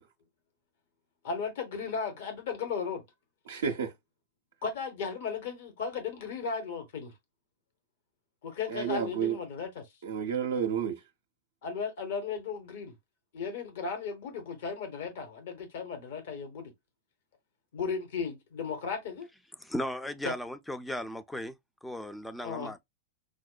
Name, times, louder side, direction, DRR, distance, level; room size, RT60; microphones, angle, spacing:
voice 1, 1.2-3.0 4.6-7.1 8.4-9.8 11.6-12.9 13.3-16.7 17.7-19.3 20.2-20.3 22.4-22.7, left 5 dB, 55° left, 0.9 m, -35 dB
voice 2, 3.5-3.9 8.7-9.4 10.0-11.0, right 7 dB, 65° right, 0.5 m, -30 dB
voice 3, 19.6-21.5 21.8-22.8, left 1 dB, 5° left, 0.4 m, -36 dB
5.0 x 2.1 x 2.3 m
figure-of-eight pair, 95°, 0 cm